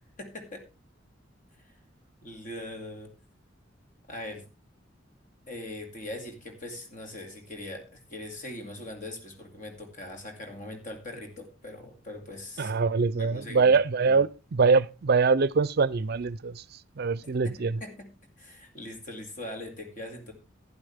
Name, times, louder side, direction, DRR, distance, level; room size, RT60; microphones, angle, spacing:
voice 1, 0.2-0.7 2.2-3.1 4.1-4.5 5.5-14.2 17.4-18.1 18.4-20.3, left 1 dB, 45° left, 2.4 m, -41 dB
voice 2, 12.6-16.6 17.0-17.8, right 4 dB, 55° right, 0.5 m, -24 dB
11.5 x 10.5 x 3.4 m
head